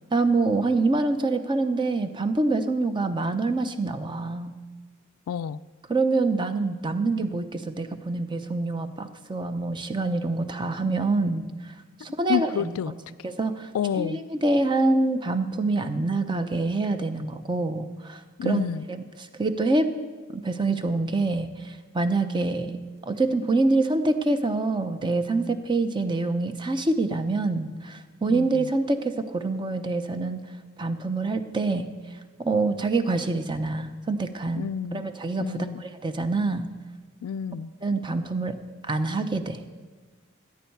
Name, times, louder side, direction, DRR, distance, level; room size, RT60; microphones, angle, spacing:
voice 1, 0.1-4.5 5.9-11.7 12.0-12.5 12.9-13.0 13.2-13.7 14.0-18.6 18.9-19.0 19.4-19.9 20.3-22.7 23.0-30.4 30.8-31.9 32.4-36.7 37.8-38.5 38.9-39.6, right 3 dB, 20° right, 9 dB, 0.6 m, -26 dB
voice 2, 5.3-5.6 12.3-12.9 13.7-14.2 18.4-18.9 28.3-28.7 34.6-35.0 35.4-35.8 37.2-37.7, left 8 dB, 80° left, 17 dB, 0.3 m, -29 dB
14.5 x 9.5 x 4.6 m, 1.4 s
head